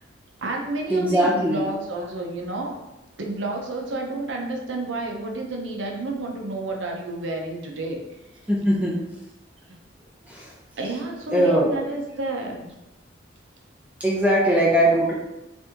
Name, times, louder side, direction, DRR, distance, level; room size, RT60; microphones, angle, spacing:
voice 1, 0.4-2.8 3.2-8.0 10.8-12.7, right 2 dB, 80° right, 1 dB, 0.6 m, -30 dB
voice 2, 0.9-1.7 8.5-9.0 10.2-10.5 11.3-11.8 14.0-15.1, right 1 dB, 10° right, -7 dB, 0.7 m, -20 dB
3.0 x 2.6 x 3.5 m, 0.95 s
head